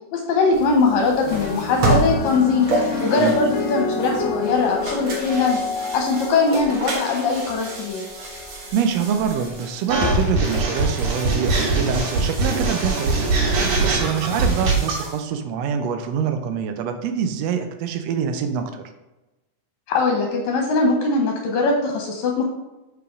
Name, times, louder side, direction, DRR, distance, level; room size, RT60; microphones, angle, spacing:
voice 1, 0.1-2.7 3.0-5.7 5.9-8.0 19.9-22.4, left 3 dB, 70° left, 1 dB, 2.0 m, -21 dB
sound 1, 0.5-15.2, right 2 dB, 50° right, 1.5 m, -30 dB
sound 2, 1.2-9.8 10.7-11.1, left 5 dB, 90° left, 1.4 m, -30 dB
voice 2, 8.7-18.9, right 7 dB, 85° right, 7 dB, 1.4 m, -25 dB
sound 3, 9.9-15.0, right 3 dB, 70° right, 2.8 m, -22 dB
5.3 x 4.8 x 4.9 m, 1.0 s
omnidirectional pair, 3.6 m